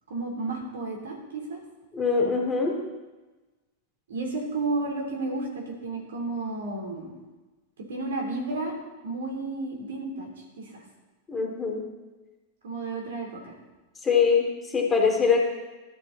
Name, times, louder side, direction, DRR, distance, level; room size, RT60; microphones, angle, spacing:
voice 1, 0.1-1.6 4.1-7.2 7.8-8.7 9.0-10.3 10.6-10.8 12.6-13.5, right 3 dB, 65° right, 0 dB, 3.5 m, -32 dB
voice 2, 1.9-2.8 11.3-11.8 14.0-15.4, left 5 dB, 15° left, 1 dB, 2.5 m, -23 dB
13.0 x 11.5 x 4.1 m, 1.2 s
figure-of-eight pair, 90°, 0 cm